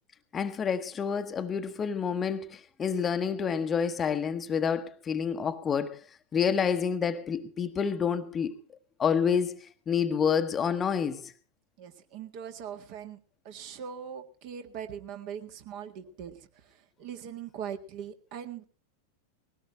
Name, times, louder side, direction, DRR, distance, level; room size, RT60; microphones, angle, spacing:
voice 1, 0.3-6.0 6.3-8.6 9.0-11.3, left 7 dB, 20° left, 1.1 m, -28 dB
voice 2, 11.8-13.2 13.4-18.6, right 8 dB, 45° right, 1.8 m, -41 dB
20.0 x 17.5 x 3.1 m
figure-of-eight pair, 90°, 0 cm